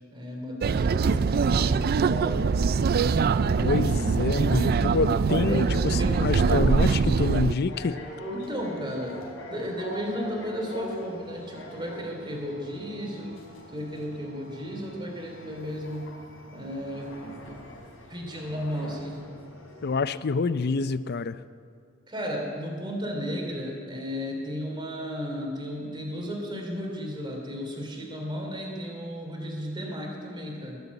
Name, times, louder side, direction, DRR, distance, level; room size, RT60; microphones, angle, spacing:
voice 1, 0.1-2.5 5.5-6.6 8.3-13.4 13.7-16.2 16.5-17.1 18.1-19.2 22.1-30.8, equal, 25° right, 0 dB, 3.1 m, -34 dB
sound 1, 0.6-7.5, right 5 dB, 50° right, 0.4 m, -23 dB
voice 2, 3.6-8.0 19.8-21.4, left 4 dB, 50° left, 14 dB, 0.5 m, -27 dB
sound 2, 6.4-20.0, equal, 70° left, 3.8 m, -43 dB
21.0 x 8.1 x 8.3 m, 2.2 s
head